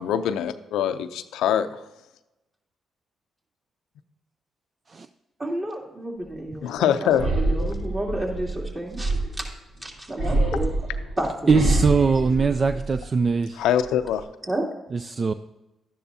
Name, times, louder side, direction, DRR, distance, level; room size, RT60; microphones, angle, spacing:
voice 1, 0.0-1.8 6.6-7.3 7.6-7.7 10.4-10.6 13.6-14.2, left 9 dB, 80° left, 10 dB, 0.5 m, -24 dB
voice 2, 5.4-9.5 9.8-10.7 11.2-11.3 14.5-14.6, right 1 dB, 30° right, -1 dB, 2.8 m, -31 dB
sound 1, 7.1-9.6 10.2-13.2 13.6-14.2, right 2 dB, 75° right, 1.7 m, -26 dB
voice 3, 11.5-13.6 14.9-15.3, right 5 dB, 45° right, 11 dB, 0.4 m, -21 dB
12.0 x 10.0 x 2.7 m, 0.98 s
supercardioid pair, 55°, 0 cm